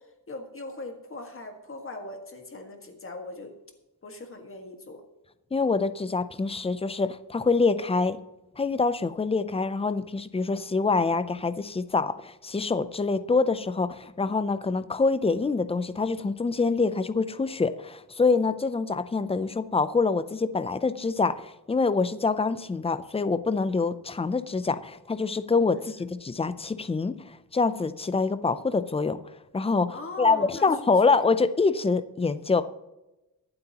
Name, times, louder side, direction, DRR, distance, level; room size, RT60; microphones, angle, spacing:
voice 1, 0.3-3.5 4.0-5.0 25.7-25.8 29.9-30.7 31.1-31.2, left 2 dB, 35° left, 4 dB, 1.7 m, -40 dB
voice 2, 5.5-8.2 8.6-29.2 29.5-32.6, left 4 dB, 15° left, 13 dB, 0.4 m, -25 dB
23.0 x 7.8 x 2.9 m, 0.97 s
wide cardioid pair, 160°, 39 cm